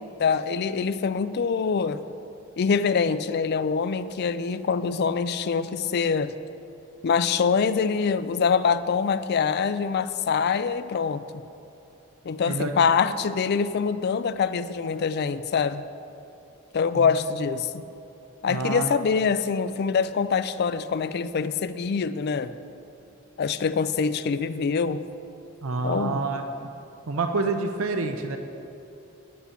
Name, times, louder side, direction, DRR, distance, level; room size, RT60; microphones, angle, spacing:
voice 1, 0.0-2.0 2.6-6.3 7.0-11.2 12.2-15.8 16.7-17.8 18.4-22.5 23.4-25.0 25.8-26.3, left 5 dB, 50° left, 13 dB, 0.4 m, -24 dB
voice 2, 18.5-19.0 25.6-26.4 27.1-28.4, right 3 dB, 85° right, 6 dB, 0.6 m, -27 dB
9.7 x 8.3 x 5.8 m, 2.9 s
head